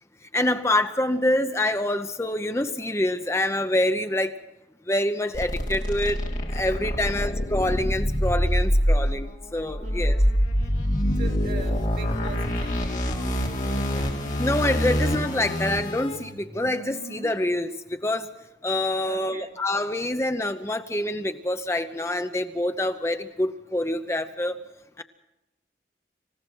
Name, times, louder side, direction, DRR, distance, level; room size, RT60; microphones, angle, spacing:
voice 1, 0.3-4.4 4.9-6.2 6.5-10.2 13.1-13.2 14.4-18.3 18.6-24.6 25.0-25.1, left 1 dB, 15° left, 8 dB, 0.7 m, -26 dB
sound 1, 5.3-16.2, equal, 45° left, 3.4 m, -25 dB
voice 2, 7.0-7.3 9.8-10.2 11.2-14.2 19.0-19.6, right 2 dB, 50° right, 0 dB, 3.2 m, -42 dB
sound 2, 12.7-17.3, right 1 dB, 75° right, 2.1 m, -44 dB
27.0 x 16.0 x 6.3 m, 0.98 s
head